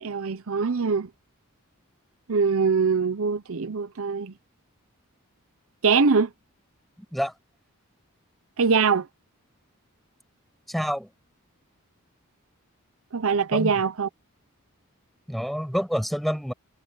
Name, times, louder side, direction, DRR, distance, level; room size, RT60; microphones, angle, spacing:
voice 1, 0.0-1.1 2.3-4.3 5.8-6.3 8.6-9.1 13.1-14.1, right 5 dB, 65° right, 0.7 m, -23 dB
voice 2, 10.7-11.1 13.5-13.7 15.3-16.5, equal, ahead, 5.8 m, -27 dB
head